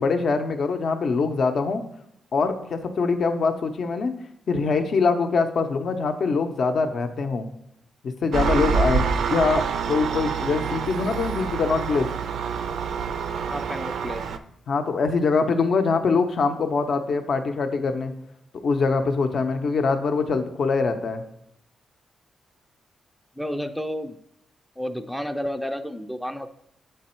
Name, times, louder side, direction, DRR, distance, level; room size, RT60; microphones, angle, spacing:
voice 1, 0.0-1.8 2.3-4.1 4.5-7.5 8.0-12.1 14.7-18.1 18.6-21.2, left 4 dB, 55° left, 7 dB, 0.5 m, -23 dB
Engine, 8.3-14.4, right 6 dB, 75° right, 0.4 m, -26 dB
voice 2, 13.5-14.3 23.4-24.2 24.8-26.5, equal, ahead, 7 dB, 0.3 m, -31 dB
7.6 x 3.4 x 4.3 m, 0.78 s
cardioid pair, 125°, 0 cm